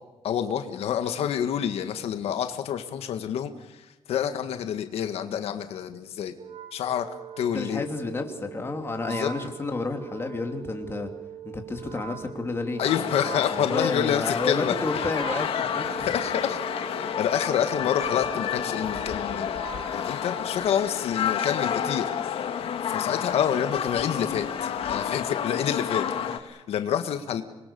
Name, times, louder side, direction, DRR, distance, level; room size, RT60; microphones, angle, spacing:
voice 1, 0.2-6.3 6.7-7.1 7.4-7.9 9.1-9.3 12.8-14.7 16.1-16.6 17.0-19.7 19.9-27.4, left 9 dB, 90° left, 8 dB, 1.6 m, -28 dB
Wind instrument woodwind instrument, 6.4-21.1, right 9 dB, 85° right, 2.6 m, -42 dB
voice 2, 7.5-11.1 11.4-12.8 13.5-16.1, left 3 dB, 25° left, 4 dB, 3.0 m, -30 dB
sound 1, 12.8-26.4, left 8 dB, 70° left, 1.9 m, -30 dB
26.5 x 22.0 x 7.0 m, 1.1 s
cardioid pair, 135°, 10 cm